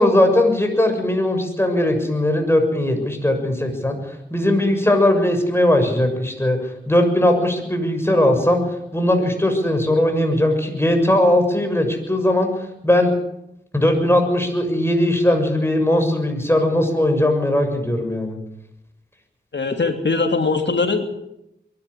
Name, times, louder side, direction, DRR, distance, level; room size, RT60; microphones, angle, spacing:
voice 1, 0.0-4.0 4.3-6.6 6.9-8.6 8.9-12.5 12.8-13.1 13.7-18.4, left 1 dB, 10° left, 5 dB, 6.8 m, -19 dB
voice 2, 19.5-21.1, left 3 dB, 70° left, 6 dB, 3.0 m, -21 dB
23.0 x 12.0 x 10.0 m, 0.82 s
cardioid pair, 40°, 19 cm